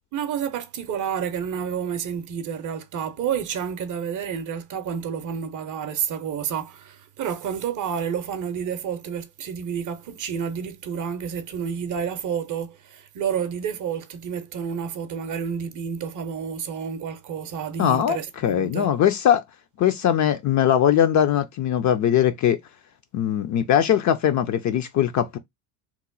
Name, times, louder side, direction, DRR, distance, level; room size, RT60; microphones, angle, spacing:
voice 1, 0.1-18.9, right 7 dB, 40° right, 0.6 m, -30 dB
voice 2, 17.8-19.4 19.8-22.6 23.1-25.4, left 10 dB, 40° left, 0.4 m, -21 dB
3.0 x 2.0 x 3.7 m
supercardioid pair, 85°, 49 cm